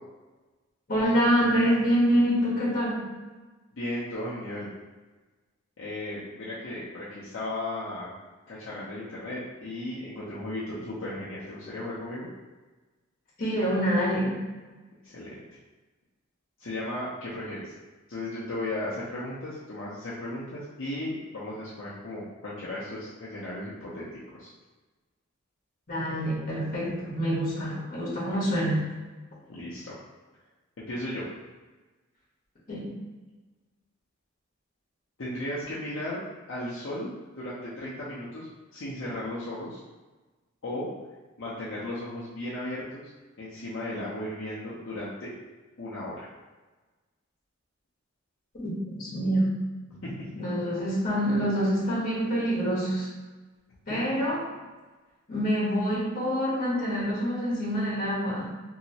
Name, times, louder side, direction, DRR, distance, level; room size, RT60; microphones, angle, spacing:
voice 1, 0.9-3.1 13.4-14.4 25.9-28.8 32.7-32.9 48.5-49.5 50.3-53.1 53.9-54.5 55.3-58.5, equal, 45° left, -7 dB, 1.2 m, -26 dB
voice 2, 3.7-4.7 5.8-8.1 8.5-12.3 15.0-15.3 16.6-17.7 18.1-24.0 24.3-24.5 29.5-30.0 30.8-31.3 35.2-36.2 36.5-39.8 40.6-40.9 41.4-43.1 43.4-45.3 45.8-46.3 50.0-50.3 53.9-54.0, left 1 dB, 65° left, -9 dB, 0.6 m, -35 dB
2.9 x 2.7 x 2.8 m, 1.2 s
head